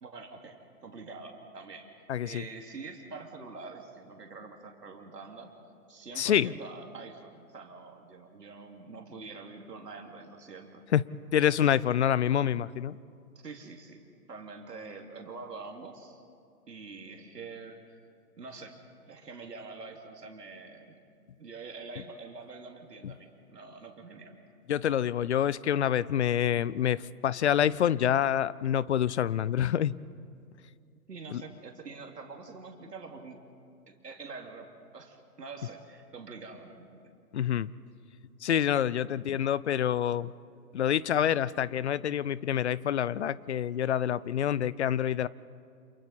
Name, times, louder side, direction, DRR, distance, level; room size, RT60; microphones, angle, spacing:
voice 1, 0.0-5.5 5.9-10.8 11.6-11.7 13.4-14.0 14.3-16.2 16.7-18.0 18.4-18.8 19.1-21.0 21.4-24.4 31.1-33.4 33.9-37.0, right 4 dB, 85° right, 3 dB, 2.9 m, -45 dB
voice 2, 2.1-2.4 6.2-6.5 10.9-11.0 11.3-13.0 24.7-30.0 31.3-31.4 37.3-37.7 38.4-40.3 40.7-45.3, left 10 dB, 45° left, 21 dB, 0.5 m, -27 dB
29.0 x 28.0 x 4.3 m, 2.4 s
hypercardioid pair, 140°, 47 cm